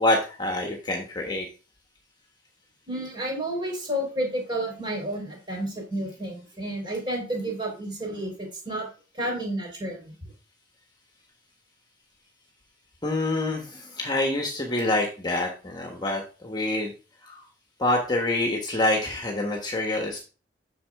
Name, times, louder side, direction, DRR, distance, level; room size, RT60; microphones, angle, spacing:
voice 1, 0.0-1.5 13.0-16.9 17.2-17.4 17.8-20.2, left 1 dB, 25° left, 2 dB, 1.4 m, -26 dB
voice 2, 2.9-8.9 9.1-10.3, right 1 dB, 25° right, 0 dB, 4.2 m, -31 dB
8.6 x 6.6 x 3.6 m, 0.35 s
head